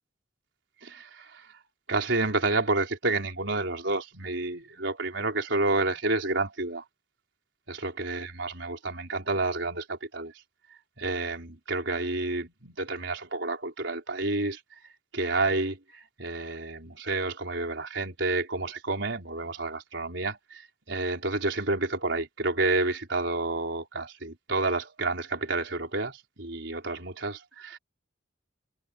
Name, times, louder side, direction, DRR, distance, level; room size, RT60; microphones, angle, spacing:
voice 1, 0.8-1.6 1.9-6.9 7.7-10.3 11.0-14.8 15.1-27.8, right 2 dB, 65° right, 5.0 m, -30 dB
head